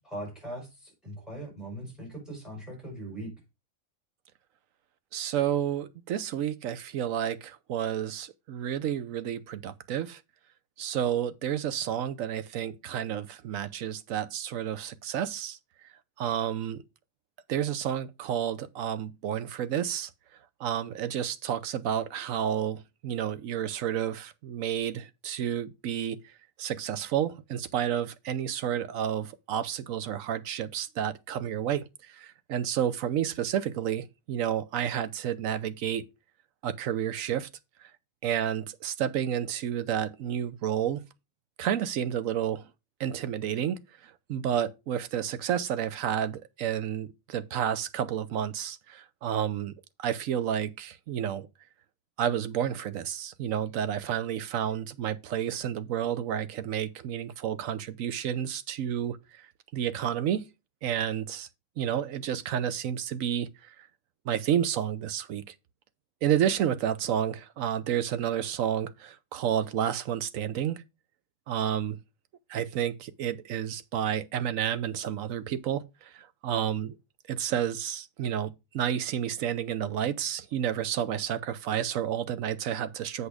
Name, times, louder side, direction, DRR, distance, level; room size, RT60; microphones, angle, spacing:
voice 1, 0.0-3.3, right 1 dB, ahead, 5.3 m, -40 dB
voice 2, 5.1-10.2 10.8-15.6 16.2-16.8 17.5-20.1 20.6-26.2 26.6-36.0 36.6-37.5 38.2-41.0 41.6-42.7 43.0-49.7 50.0-51.5 52.2-59.4 59.7-60.5 60.8-61.5 61.8-63.9 64.2-65.5 66.2-70.8 71.5-72.0 72.5-76.9 77.3-83.3, right 9 dB, 75° right, 1.1 m, -30 dB
8.3 x 4.9 x 4.9 m
omnidirectional pair, 1.4 m